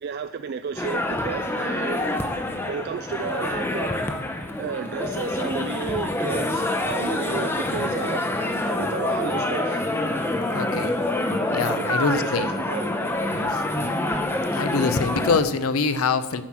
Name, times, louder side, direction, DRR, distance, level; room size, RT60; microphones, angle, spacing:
voice 1, 0.0-2.2 2.7-3.9 4.6-8.2 8.7-9.9 11.6-13.0 13.3-13.6, right 6 dB, 50° right, 9 dB, 0.3 m, -32 dB
sound 1, 0.7-15.4, left 1 dB, 10° left, 0.6 m, -26 dB
voice 2, 10.1-11.0 11.5-12.5 13.8-13.9 14.3-16.4, left 4 dB, 80° left, 12 dB, 0.6 m, -25 dB
10.0 x 5.8 x 6.0 m, 1.1 s
head